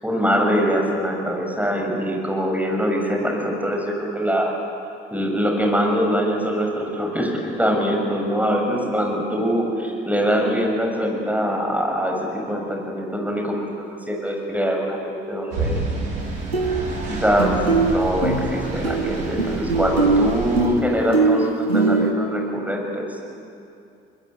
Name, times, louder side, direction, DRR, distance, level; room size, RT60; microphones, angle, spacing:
voice 1, 0.0-4.5 5.1-13.6 14.1-15.8 17.1-23.2, equal, 5° right, 1 dB, 6.5 m, -23 dB
sound 1, 15.5-20.6, right 3 dB, 70° right, 4.4 m, -29 dB
sound 2, 16.2-16.3 16.5-17.1 17.4-22.1, right 3 dB, 90° right, 1.4 m, -21 dB
23.5 x 21.0 x 9.4 m, 2.5 s
figure-of-eight pair, 50°, 30 cm